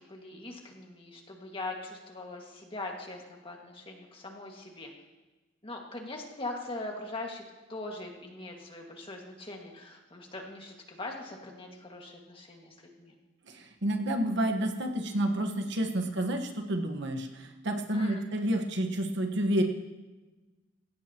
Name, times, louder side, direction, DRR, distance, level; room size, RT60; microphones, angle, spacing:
voice 1, 0.1-4.9 5.6-7.4 7.7-13.2 17.9-18.3, left 2 dB, 30° left, 1 dB, 2.0 m, -41 dB
voice 2, 13.5-19.6, right 1 dB, 65° right, 4 dB, 1.4 m, -30 dB
18.0 x 16.5 x 3.0 m, 1.2 s
head